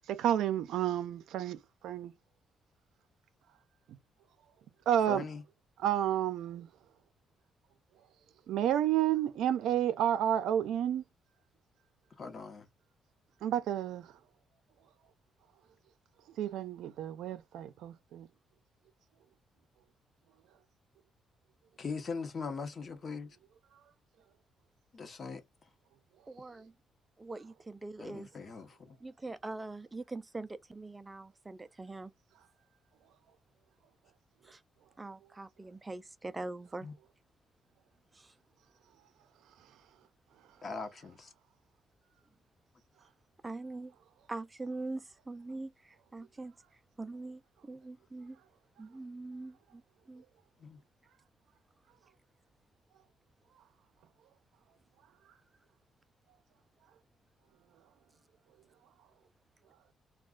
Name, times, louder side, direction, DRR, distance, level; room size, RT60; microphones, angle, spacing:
voice 1, 0.2-1.6 1.8-2.1 4.9-5.3 5.8-6.7 8.5-11.0 13.4-14.1 16.4-18.3, right 10 dB, 85° right, 0.5 m, -30 dB
voice 2, 5.1-5.4 12.2-12.7 21.8-23.3 24.9-25.4 28.0-29.0 36.8-36.9 40.6-41.3 50.6-50.8, left 4 dB, 45° left, 0.9 m, -40 dB
voice 3, 26.3-26.7 27.2-28.3 29.0-32.1 34.4-34.6 35.0-36.9 38.1-38.3 43.4-43.9 44.3-46.5 47.0-48.4 48.8-49.8 50.1-50.2, right 2 dB, 20° right, 0.4 m, -43 dB
2.3 x 2.3 x 3.7 m
cardioid pair, 90°, 0 cm